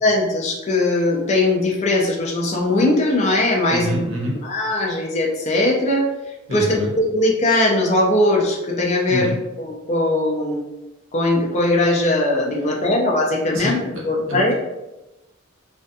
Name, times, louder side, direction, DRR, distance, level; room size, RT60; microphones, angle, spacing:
voice 1, 0.0-4.0 4.4-6.1 6.5-9.3 9.6-10.6 11.1-14.5, left 2 dB, 30° left, -1 dB, 0.4 m, -20 dB
voice 2, 3.7-4.4 6.5-6.9 9.1-9.4 13.5-14.5, equal, 70° right, -3 dB, 0.8 m, -27 dB
2.5 x 2.2 x 2.6 m, 1.0 s
head